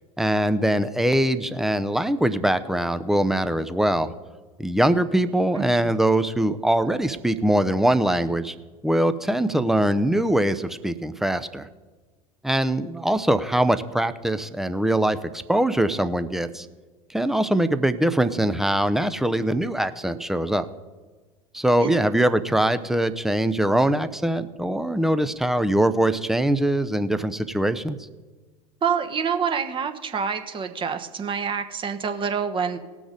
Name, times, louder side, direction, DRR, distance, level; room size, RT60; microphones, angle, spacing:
voice 1, 0.2-4.1 4.6-8.5 8.8-11.7 12.4-15.2 15.5-16.7 17.1-20.7 21.5-28.0, right 1 dB, ahead, 11 dB, 0.6 m, -22 dB
voice 2, 5.5-5.9 21.8-21.9 28.8-32.8, right 6 dB, 25° right, 8 dB, 1.1 m, -27 dB
18.5 x 6.2 x 5.2 m, 1.3 s
figure-of-eight pair, 80°, 19 cm